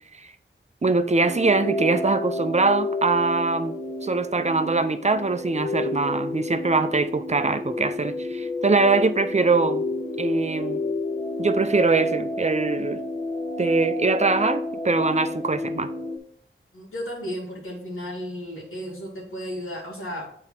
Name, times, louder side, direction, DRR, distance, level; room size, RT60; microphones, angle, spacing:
voice 1, 0.8-3.7 4.0-9.8 10.2-10.8 11.4-13.0 13.6-15.9, right 3 dB, 35° right, 10 dB, 0.6 m, -22 dB
sound 1, 1.2-16.2, left 2 dB, 25° left, 1.0 m, -30 dB
voice 2, 16.7-20.3, equal, 90° left, -5 dB, 1.9 m, -34 dB
8.9 x 3.6 x 4.5 m, 0.64 s
wide cardioid pair, 50°, 21 cm